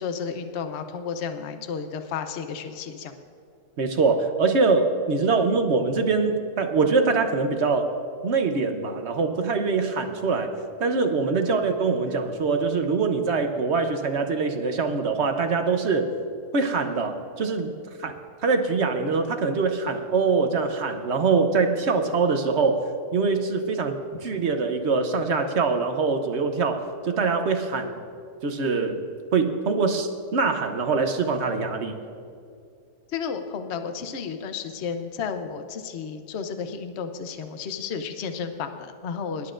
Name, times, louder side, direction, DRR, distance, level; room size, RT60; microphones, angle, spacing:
voice 1, 0.0-3.1 11.4-11.6 33.1-39.5, left 6 dB, 50° left, 7 dB, 0.9 m, -32 dB
voice 2, 3.8-7.9 8.2-10.5 10.8-16.1 16.5-17.7 18.0-18.2 18.4-23.9 24.2-28.0 28.4-29.0 29.3-31.9, right 4 dB, 50° right, 6 dB, 1.0 m, -23 dB
24.5 x 11.5 x 2.5 m, 2.4 s
omnidirectional pair, 1.7 m